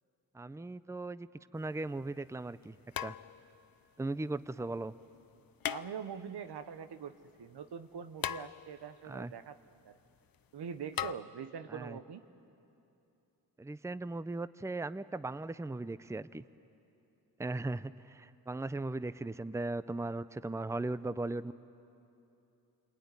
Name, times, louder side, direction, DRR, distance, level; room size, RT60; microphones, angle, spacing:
voice 1, 0.3-1.3 1.5-2.8 3.0-3.2 4.0-4.9 9.1-9.3 11.7-12.0 13.6-16.4 17.4-21.5, right 2 dB, 10° right, 15 dB, 0.6 m, -38 dB
sound 1, 1.6-1.7 2.9-3.7 5.6-6.4 8.2-9.0 11.0-11.1, left 10 dB, 60° left, 0.6 m, -39 dB
voice 2, 5.7-9.6 9.8-10.0 10.5-12.2, right 7 dB, 85° right, 10 dB, 1.1 m, -43 dB
29.0 x 21.0 x 9.7 m, 2.8 s
cardioid pair, 55°, 39 cm